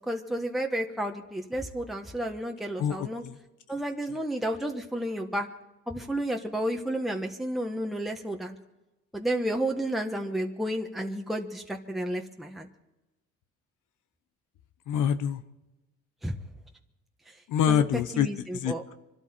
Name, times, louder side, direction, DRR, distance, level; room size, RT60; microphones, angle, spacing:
voice 1, 0.1-3.2 3.7-5.5 5.9-8.6 9.1-12.7 16.2-16.3 17.7-17.8 18.1-18.8, right 1 dB, ahead, 2 dB, 1.3 m, -31 dB
voice 2, 2.8-3.4 14.9-15.4 17.5-18.3 18.5-18.9, left 9 dB, 80° left, 11 dB, 1.0 m, -26 dB
24.5 x 12.5 x 4.5 m, 1.0 s
cardioid pair, 90°, 30 cm